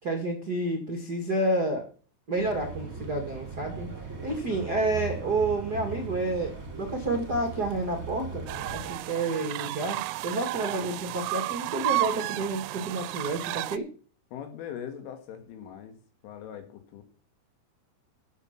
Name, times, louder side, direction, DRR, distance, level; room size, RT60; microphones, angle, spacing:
voice 1, 0.0-1.9 2.3-3.9 4.2-8.4 8.7-13.9, right 2 dB, 60° right, 4 dB, 1.0 m, -29 dB
sound 1, 2.4-9.0, right 4 dB, 25° right, 1.8 m, -39 dB
sound 2, 8.5-13.8, right 19 dB, 90° right, 3.2 m, -32 dB
voice 2, 14.3-16.0 16.2-17.0, left 9 dB, 85° left, 7 dB, 4.5 m, -41 dB
13.5 x 6.1 x 5.9 m, 0.40 s
omnidirectional pair, 5.5 m